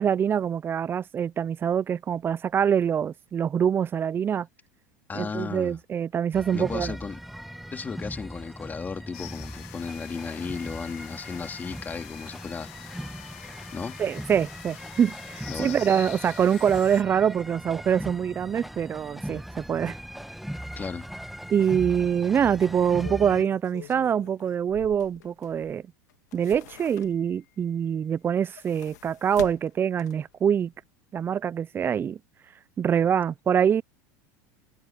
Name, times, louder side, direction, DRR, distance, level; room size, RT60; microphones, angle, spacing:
voice 1, 0.0-4.5 5.1-6.9 14.0-20.0 21.5-25.8 26.3-30.7 31.1-32.2 32.8-33.8, right 8 dB, 25° right, 0.4 m, -25 dB
voice 2, 5.1-5.8 6.5-7.2 7.7-13.1 13.7-14.0 15.5-15.8 20.8-21.1, left 5 dB, 20° left, 3.5 m, -35 dB
sound 1, 6.3-23.4, equal, ahead, 1.3 m, -39 dB
sound 2, 9.1-17.0, left 23 dB, 65° left, 1.6 m, -45 dB
sound 3, 21.1-21.2 21.6-21.7 22.7-25.7 26.1-27.4 28.3-30.4 30.8-30.9, left 15 dB, 85° left, 2.2 m, -45 dB
supercardioid pair, 110°, 9 cm